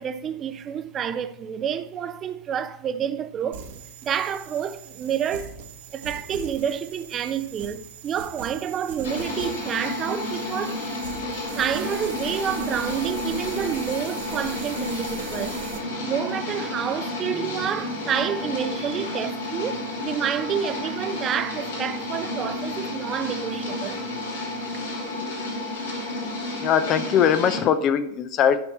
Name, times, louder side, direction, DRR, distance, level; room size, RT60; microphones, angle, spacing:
voice 1, 0.0-3.7 4.0-5.6 5.9-10.8 11.6-15.6 16.0-24.0 24.7-24.8, right 8 dB, 25° right, 0.7 m, -29 dB
sound 1, 3.5-15.8, right 6 dB, 55° right, 1.3 m, -40 dB
sound 2, 9.0-27.6, left 2 dB, 70° left, 2.8 m, -31 dB
sound 3, 11.8-19.6, equal, 90° left, 2.6 m, -45 dB
voice 2, 26.6-28.6, left 8 dB, 35° left, 0.7 m, -21 dB
11.5 x 5.7 x 4.2 m
figure-of-eight pair, 90°, 0 cm